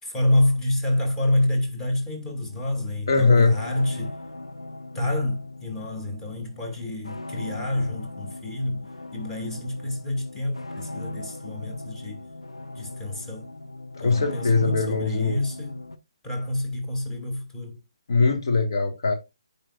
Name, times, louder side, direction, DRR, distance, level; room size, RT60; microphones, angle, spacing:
voice 1, 0.0-4.2 4.9-12.3 12.8-13.5 14.0-15.8 16.2-17.8, left 1 dB, 10° left, 2.5 m, -28 dB
sound 1, 2.3-16.0, left 2 dB, 85° left, 1.0 m, -39 dB
voice 2, 3.1-3.5 13.9-15.4 18.1-19.1, left 4 dB, 55° left, 1.8 m, -21 dB
14.0 x 5.5 x 2.4 m
figure-of-eight pair, 140°, 3 cm